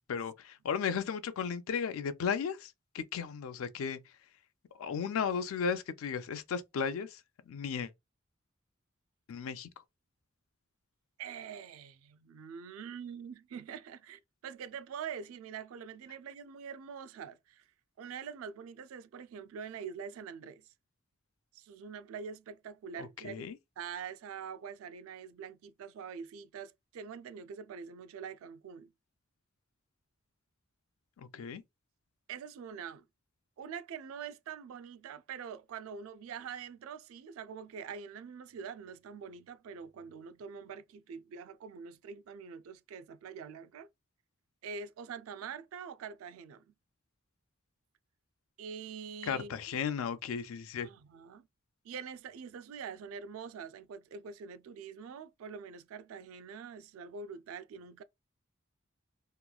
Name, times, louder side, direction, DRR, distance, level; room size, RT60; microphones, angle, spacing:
voice 1, 0.1-4.0 4.8-7.2 7.5-7.9 9.3-9.7 23.0-23.6 31.2-31.6 49.3-50.9, left 6 dB, 85° left, 0.4 m, -35 dB
voice 2, 11.2-17.6 18.0-20.7 21.5-23.5 23.8-28.9 32.3-33.1 33.6-43.9 44.6-46.7 48.6-49.5 50.8-51.5 51.8-58.0, right 6 dB, 80° right, 0.3 m, -45 dB
2.9 x 2.3 x 2.3 m
head